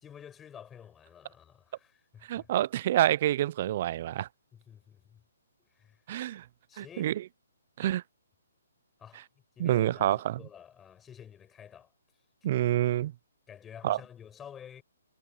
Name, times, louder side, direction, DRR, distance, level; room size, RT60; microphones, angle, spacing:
voice 1, 0.0-2.5 4.5-5.2 5.6-6.0 6.7-7.2 9.0-9.2 9.5-11.9 13.5-14.8, left 8 dB, 10° left, 4.9 m, -50 dB
voice 2, 2.3-4.3 6.1-6.4 6.8-7.1 7.8-8.0 9.6-10.4 12.4-13.1 13.8-14.0, right 13 dB, 35° right, 0.3 m, -27 dB
hypercardioid pair, 165°, 0 cm